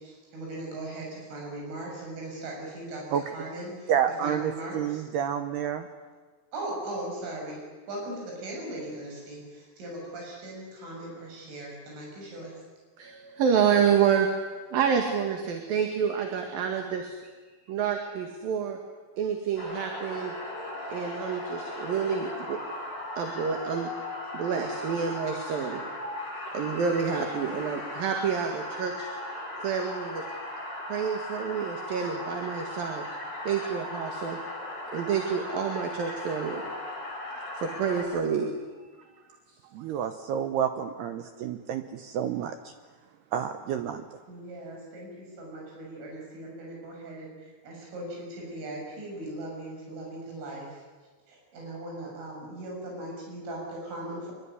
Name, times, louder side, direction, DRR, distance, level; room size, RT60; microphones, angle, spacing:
voice 1, 0.0-3.0 3.3-3.9 4.2-5.1 6.5-12.6 44.3-50.8 51.3-54.3, right 1 dB, 85° right, -1 dB, 9.7 m, -39 dB
voice 2, 3.9-5.9 39.7-42.7 43.3-44.0, right 9 dB, 70° right, 8 dB, 2.7 m, -29 dB
voice 3, 13.0-14.3 14.7-17.3 17.7-18.8 19.2-20.3 20.9-25.8 26.5-29.1 29.6-30.2 30.9-33.1 33.5-34.4 34.9-36.6 37.0-37.2 37.5-38.5, right 7 dB, 55° right, 4 dB, 3.3 m, -28 dB
sound 1, 19.6-38.0, left 1 dB, 40° left, 7.6 m, -37 dB
25.0 x 23.5 x 9.8 m, 1.4 s
omnidirectional pair, 5.5 m